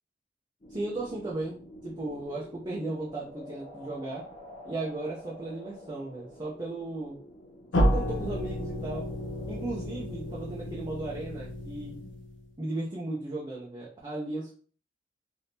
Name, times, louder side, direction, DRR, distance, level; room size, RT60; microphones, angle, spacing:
sound 1, 0.6-12.1, left 1 dB, 35° left, 0.7 m, -49 dB
voice 1, 0.7-4.2 4.6-7.2 7.7-9.1 9.5-12.0 12.6-14.5, right 2 dB, 25° right, -5 dB, 0.6 m, -36 dB
sound 2, 7.7-12.5, equal, 90° left, 0.5 m, -31 dB
3.5 x 2.7 x 2.7 m, 0.42 s
head